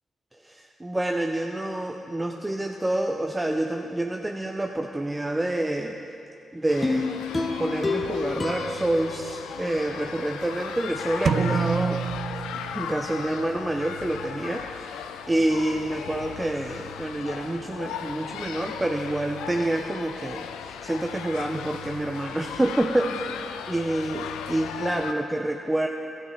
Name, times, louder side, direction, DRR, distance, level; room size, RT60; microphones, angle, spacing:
voice 1, 0.4-6.0 6.5-7.2 7.6-12.0 12.7-23.2 23.7-25.9, right 1 dB, 20° right, 3 dB, 0.7 m, -28 dB
sound 1, 6.7-25.1, left 8 dB, 80° left, 0.4 m, -37 dB
sound 2, 6.8-10.1 10.6-10.7, left 3 dB, 25° left, 1.2 m, -30 dB
sound 3, 11.3-13.1, right 7 dB, 60° right, 0.4 m, -27 dB
12.5 x 7.5 x 5.7 m, 2.6 s
hypercardioid pair, 40°, 0 cm